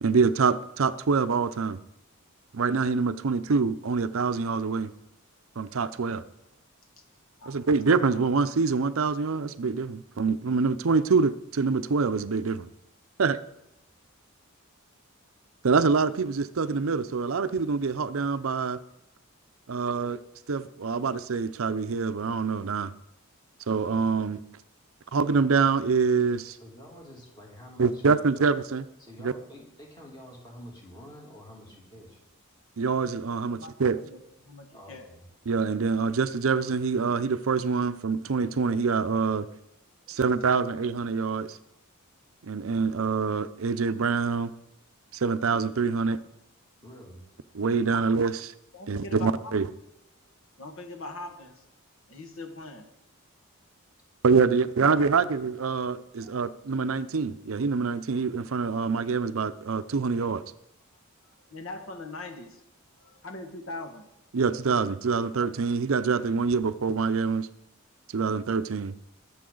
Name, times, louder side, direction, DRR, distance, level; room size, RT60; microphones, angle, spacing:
voice 1, 0.0-1.8 2.5-4.9 5.6-6.2 7.5-12.7 13.2-13.4 15.6-18.8 19.7-20.2 20.5-22.9 23.7-24.4 25.1-26.6 27.8-28.8 29.2-29.3 32.8-34.0 35.5-39.5 40.1-41.6 42.5-44.5 45.1-46.2 47.5-48.5 48.9-49.7 54.2-60.4 64.3-67.5 68.1-68.9, right 5 dB, 70° right, 13 dB, 0.6 m, -25 dB
voice 2, 26.6-28.4 29.0-32.2 34.7-35.3 40.1-40.3 46.8-47.2 50.3-50.4 56.2-56.5 60.9-61.5 62.9-63.3, equal, 20° left, -2 dB, 2.8 m, -49 dB
voice 3, 33.5-35.1 47.9-48.0 48.7-49.5 50.6-51.5 52.1-52.8 61.5-62.6 63.2-64.1, left 2 dB, 65° left, 4 dB, 1.7 m, -41 dB
21.0 x 7.1 x 3.9 m, 0.83 s
head